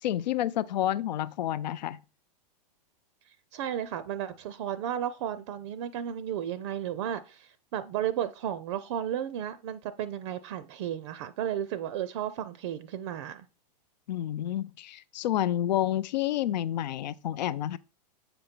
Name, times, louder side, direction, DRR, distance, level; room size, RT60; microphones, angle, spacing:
voice 1, 0.0-2.0 14.1-17.8, left 12 dB, 90° left, 0.4 m, -29 dB
voice 2, 3.5-13.5, right 10 dB, 45° right, 0.5 m, -33 dB
7.8 x 5.2 x 4.4 m
supercardioid pair, 160°, 21 cm